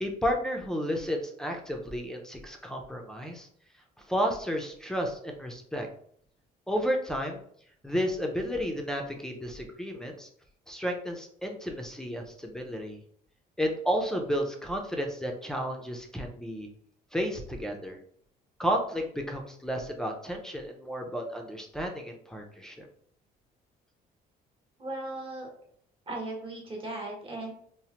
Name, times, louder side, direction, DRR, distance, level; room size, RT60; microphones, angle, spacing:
voice 1, 0.0-3.5 4.1-5.9 6.7-7.4 7.8-10.3 10.7-13.0 13.6-16.7 17.1-18.0 18.6-22.9, equal, 5° left, 0 dB, 0.4 m, -32 dB
voice 2, 24.8-25.5 26.1-27.5, right 2 dB, 30° right, 0 dB, 1.0 m, -37 dB
3.0 x 2.1 x 2.8 m, 0.64 s
cardioid pair, 110°, 17 cm